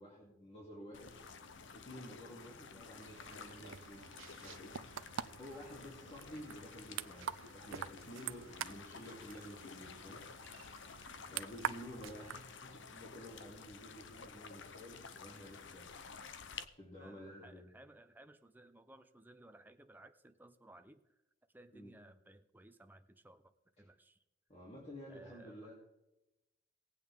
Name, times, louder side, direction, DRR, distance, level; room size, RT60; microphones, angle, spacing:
voice 1, 0.0-1.3 1.7-4.1 4.4-4.8 5.4-10.2 11.3-15.9 16.8-17.6 21.7-21.9 23.8-23.9 24.5-25.7, equal, 30° left, -5 dB, 2.8 m, -51 dB
sound 1, 0.9-16.6, left 5 dB, 65° left, 0.7 m, -52 dB
sound 2, 3.0-12.4, right 9 dB, 80° right, 0.4 m, -46 dB
voice 2, 11.1-11.5 17.0-21.0 21.5-24.2 25.1-25.7, right 1 dB, 10° right, 9 dB, 0.6 m, -59 dB
18.5 x 8.4 x 3.6 m, 0.93 s
head